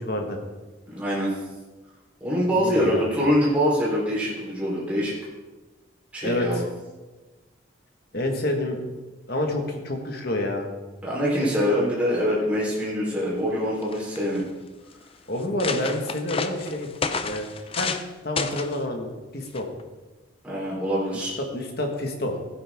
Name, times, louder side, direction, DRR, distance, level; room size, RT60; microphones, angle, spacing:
voice 1, 0.0-0.4 2.6-3.1 6.2-6.6 8.1-8.8 9.3-10.7 15.3-16.9 17.2-17.5 17.8-17.9 18.2-19.1 19.3-19.7 21.4-22.4, left 1 dB, 50° left, 2 dB, 1.7 m, -28 dB
voice 2, 0.9-1.3 2.2-5.1 6.1-6.6 11.0-14.4 20.4-21.3, equal, 5° right, -7 dB, 4.0 m, -24 dB
sound 1, 13.5-13.6 13.8-14.4 15.0-15.1 15.4-18.1 18.4-18.8 19.5-19.8, left 5 dB, 30° left, 0.5 m, -30 dB
15.5 x 9.2 x 3.7 m, 1.2 s
head